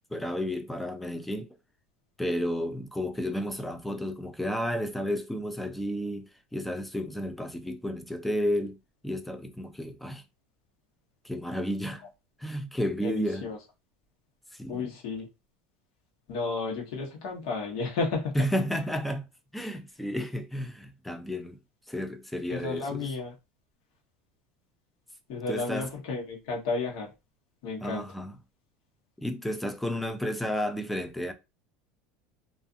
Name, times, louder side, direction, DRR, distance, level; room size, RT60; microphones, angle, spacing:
voice 1, 0.1-1.5 2.2-8.8 9.0-10.2 11.2-12.0 12.4-13.5 14.5-14.9 18.3-19.3 19.5-21.6 21.9-23.1 25.3-25.9 27.8-28.4 29.2-31.3, equal, 5° left, 0.3 m, -32 dB
voice 2, 13.0-13.6 14.7-15.3 16.3-18.4 22.5-23.3 25.3-27.1 27.6-28.1, left 4 dB, 75° left, 1.1 m, -32 dB
2.5 x 2.4 x 2.5 m
supercardioid pair, 150°, 3 cm